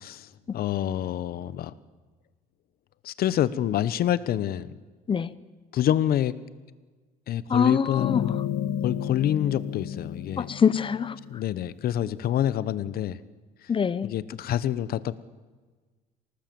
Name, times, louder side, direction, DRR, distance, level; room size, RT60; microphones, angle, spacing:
voice 1, 0.0-1.7 3.0-4.7 5.7-6.3 7.3-8.3 8.8-10.5 11.3-13.2 14.0-15.1, left 11 dB, 65° left, 16 dB, 1.1 m, -27 dB
voice 2, 7.5-8.2 10.4-11.2 13.7-14.1, left 6 dB, 30° left, 17 dB, 0.8 m, -24 dB
sound 1, 8.0-11.5, left 10 dB, 90° left, 1.5 m, -32 dB
27.0 x 18.5 x 7.8 m, 1.4 s
cardioid pair, 110°, 17 cm